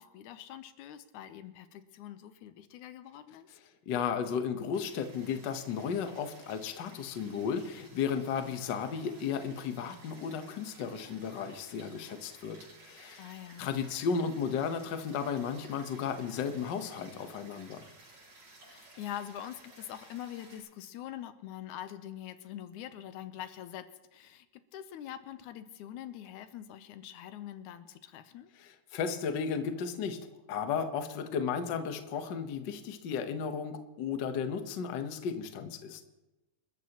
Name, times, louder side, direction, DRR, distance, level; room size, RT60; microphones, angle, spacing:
voice 1, 0.0-3.6 13.2-13.7 18.6-23.9 24.1-28.5, left 11 dB, 80° left, 11 dB, 2.2 m, -44 dB
voice 2, 3.9-12.6 12.8-13.2 13.6-17.9 28.6-30.2 30.5-36.0, left 6 dB, 65° left, 7 dB, 1.1 m, -34 dB
sound 1, 4.7-20.6, right 2 dB, 70° right, 6.9 m, -56 dB
28.5 x 13.0 x 3.0 m, 1.0 s
omnidirectional pair, 3.5 m